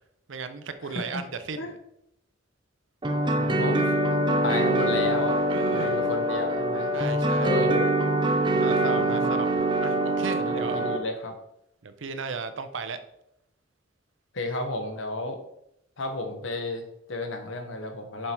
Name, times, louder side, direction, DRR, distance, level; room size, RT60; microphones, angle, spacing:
voice 1, 0.3-1.8 5.5-6.0 6.9-7.7 8.5-10.8 11.8-13.0, right 4 dB, 70° right, 10 dB, 0.6 m, -36 dB
sound 1, 3.0-11.0, right 1 dB, 25° right, 0.7 m, -24 dB
voice 2, 3.3-3.9 4.4-5.4 5.7-6.9 7.4-7.9 9.0-9.4 10.4-11.4 14.3-15.4 16.0-18.3, left 2 dB, 75° left, 5 dB, 1.1 m, -32 dB
7.3 x 4.6 x 4.4 m, 0.79 s
head